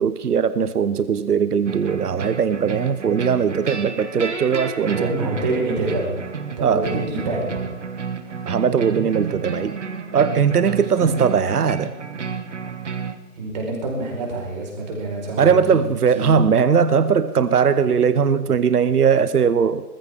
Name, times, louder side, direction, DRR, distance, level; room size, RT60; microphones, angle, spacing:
voice 1, 0.0-5.1 6.6-6.9 8.5-9.8 10.1-11.9 15.4-20.0, right 6 dB, 75° right, 14 dB, 0.9 m, -19 dB
sound 1, 1.7-13.2, right 6 dB, 50° right, 1.3 m, -30 dB
voice 2, 5.0-6.3 6.6-7.6 8.3-8.4 11.0-11.1 13.3-15.8 16.1-16.3, right 2 dB, 25° right, -1 dB, 4.5 m, -26 dB
20.0 x 14.5 x 3.5 m, 1.2 s
figure-of-eight pair, 160°, 46 cm